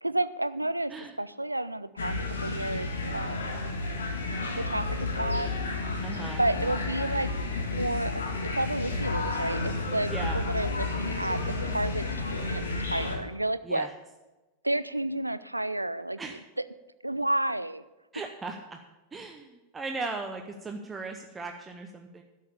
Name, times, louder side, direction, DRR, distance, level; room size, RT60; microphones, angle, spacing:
voice 1, 0.0-2.2 2.4-3.5 4.5-5.5 6.2-7.3 7.8-11.4 11.7-13.9 14.6-16.2 17.0-17.8, right 1 dB, 85° right, 15 dB, 0.4 m, -31 dB
sound 1, 2.0-13.2, left 3 dB, 70° left, 1.7 m, -31 dB
voice 2, 6.0-6.4 10.1-10.4 13.6-13.9 16.2-16.4 18.1-18.8 19.1-22.2, right 3 dB, 15° right, 4 dB, 0.8 m, -37 dB
11.5 x 6.6 x 6.9 m, 1.1 s
figure-of-eight pair, 90°, 0 cm